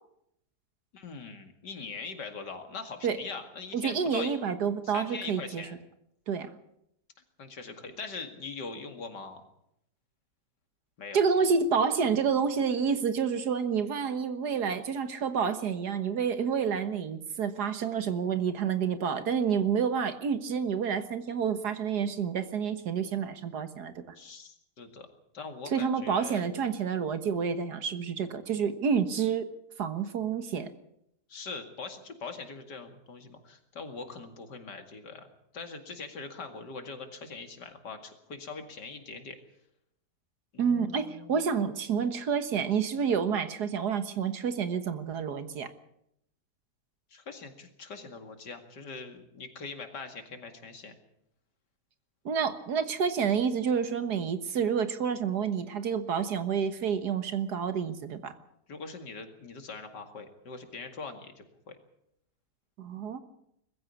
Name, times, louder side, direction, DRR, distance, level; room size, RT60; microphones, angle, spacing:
voice 1, 0.9-4.3 4.8-5.8 7.4-9.4 11.0-11.2 24.1-25.1 25.3-26.4 31.3-35.3 35.5-39.4 40.5-41.4 47.1-51.0 58.7-61.8, left 4 dB, 85° left, 7 dB, 2.8 m, -42 dB
voice 2, 3.7-5.7 6.3-6.6 11.1-24.2 25.7-29.5 29.8-30.7 40.6-45.7 52.3-58.3 62.8-63.2, right 6 dB, 70° right, 10 dB, 1.9 m, -29 dB
21.5 x 15.0 x 8.4 m, 0.77 s
omnidirectional pair, 1.8 m